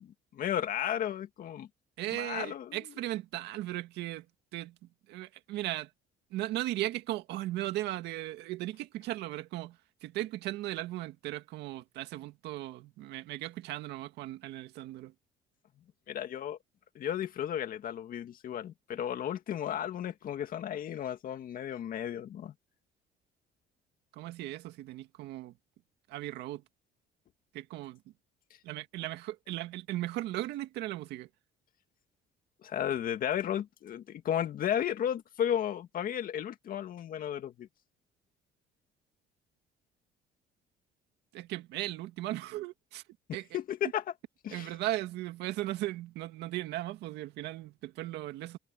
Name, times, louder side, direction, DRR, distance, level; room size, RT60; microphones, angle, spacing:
voice 1, 0.0-1.7 2.1-2.8 16.1-16.6 17.0-22.5 32.6-37.7 43.5-44.0 44.4-44.7, left 10 dB, 55° left, 2.0 m, -34 dB
voice 2, 2.0-4.3 4.5-4.8 5.1-5.9 6.3-15.1 24.1-25.5 26.1-26.6 27.5-28.0 28.6-31.3 41.3-43.0 43.3-43.5 44.5-48.6, right 15 dB, 85° right, 2.0 m, -37 dB
cardioid pair, 110°, 17 cm